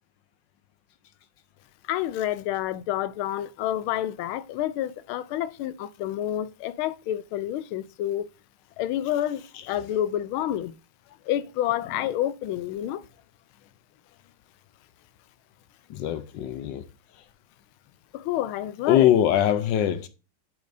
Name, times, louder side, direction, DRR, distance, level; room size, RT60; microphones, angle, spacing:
voice 1, 1.9-8.2 8.8-10.7 11.3-13.0 18.1-19.1, left 12 dB, 85° left, 1.5 m, -29 dB
voice 2, 15.9-16.9 17.2-17.3 18.9-20.1, left 11 dB, 70° left, 1.2 m, -22 dB
7.8 x 5.2 x 2.6 m
omnidirectional pair, 2.2 m